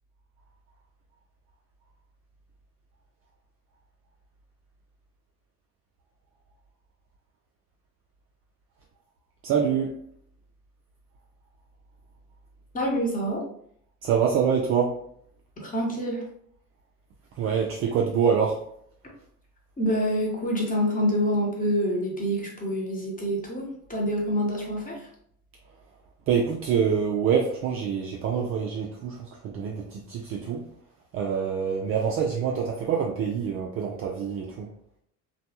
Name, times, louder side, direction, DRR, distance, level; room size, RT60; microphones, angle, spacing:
voice 1, 9.4-9.9 14.0-15.0 17.4-18.6 26.3-30.7 31.1-34.7, right 7 dB, 35° right, 0 dB, 0.4 m, -25 dB
voice 2, 12.7-13.4 15.6-16.2 19.8-23.6 23.9-25.1, equal, 20° left, -2 dB, 1.0 m, -26 dB
3.2 x 2.3 x 2.8 m, 0.67 s
figure-of-eight pair, 60°, 43 cm